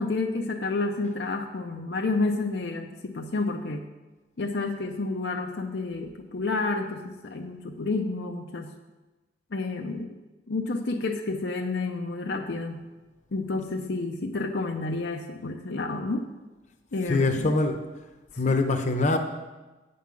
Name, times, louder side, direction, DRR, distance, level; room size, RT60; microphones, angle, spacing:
voice 1, 0.0-3.8 4.4-8.7 9.5-10.1 10.5-12.8 13.3-16.3 16.9-17.5 18.5-18.6, left 3 dB, 70° left, 3 dB, 0.6 m, -30 dB
voice 2, 17.1-17.8 18.4-19.2, left 2 dB, 40° left, 5 dB, 0.9 m, -23 dB
8.5 x 5.4 x 7.5 m, 1.2 s
head